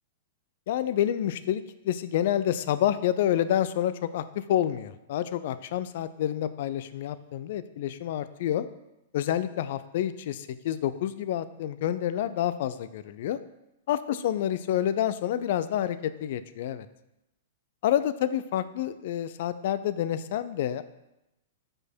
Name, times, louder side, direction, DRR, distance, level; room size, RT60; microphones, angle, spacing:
voice 1, 0.7-8.7 9.1-13.4 13.9-16.9 17.8-20.8, left 11 dB, 60° left, 14 dB, 0.4 m, -28 dB
5.0 x 4.6 x 4.5 m, 0.92 s
hypercardioid pair, 115°, 0 cm